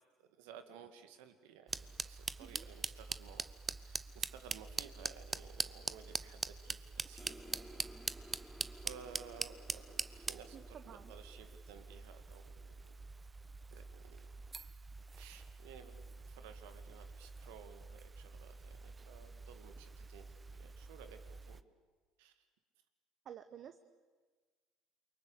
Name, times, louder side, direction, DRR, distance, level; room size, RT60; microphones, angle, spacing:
voice 1, 0.2-3.5 3.7-8.5 8.7-13.1 13.7-14.3 15.2-21.6 22.2-22.4, right 7 dB, 75° right, 9 dB, 2.1 m, -56 dB
sound 1, 1.7-21.6, right 4 dB, 25° right, 0.9 m, -44 dB
sound 2, 7.2-12.0, right 1 dB, 10° right, 3.3 m, -57 dB
voice 2, 10.5-11.1 23.2-23.8, right 9 dB, 50° right, 10 dB, 1.1 m, -52 dB
29.0 x 23.5 x 8.4 m, 1.4 s
hypercardioid pair, 65°, 0 cm